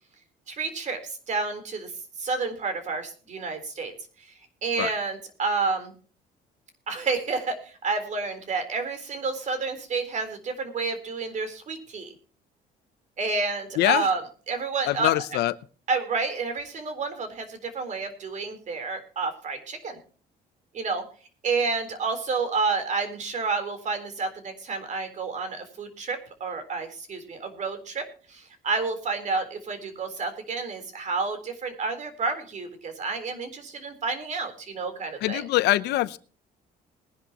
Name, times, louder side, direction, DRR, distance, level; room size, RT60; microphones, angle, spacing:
voice 1, 0.5-1.9 2.2-3.9 4.2-4.3 4.6-5.9 6.9-12.1 13.2-15.4 15.9-20.0 20.7-21.0 21.4-35.5, right 4 dB, 45° right, 8 dB, 3.9 m, -30 dB
voice 2, 13.8-14.1 14.9-15.5 35.2-36.2, left 15 dB, 80° left, 15 dB, 0.8 m, -23 dB
20.5 x 11.0 x 3.0 m, 0.39 s
cardioid pair, 110°, 17 cm